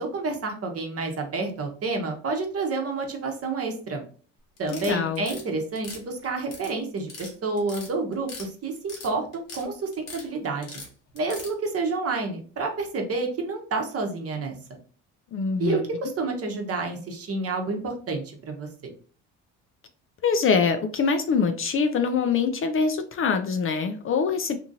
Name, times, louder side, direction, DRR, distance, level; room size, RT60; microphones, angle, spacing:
voice 1, 0.0-4.0 4.6-10.8 11.1-14.5 15.6-18.7, right 3 dB, 40° right, 3 dB, 0.9 m, -29 dB
sound 1, 4.6-5.4 5.8-6.7 7.0-7.3 7.6-8.5 8.7-9.6 9.9-10.3 10.6-11.5, left 4 dB, 80° left, 1.2 m, -40 dB
voice 2, 4.7-5.2 15.3-15.9 20.2-24.6, left 5 dB, 35° left, 7 dB, 0.4 m, -24 dB
2.9 x 2.6 x 2.6 m, 0.41 s
supercardioid pair, 70°, 36 cm